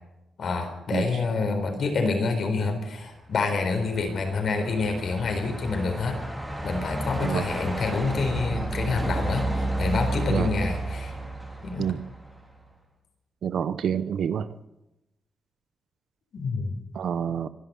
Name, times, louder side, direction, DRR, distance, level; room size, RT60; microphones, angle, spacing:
voice 1, 0.4-6.2 6.6-11.2 11.6-11.9 16.3-16.8, left 4 dB, 50° left, 5 dB, 4.1 m, -27 dB
Truck, 3.2-12.6, right 1 dB, 5° right, 3.7 m, -32 dB
voice 2, 13.4-14.5 16.9-17.5, right 8 dB, 65° right, 14 dB, 0.7 m, -27 dB
24.5 x 11.5 x 9.6 m, 0.95 s
wide cardioid pair, 155°, 0 cm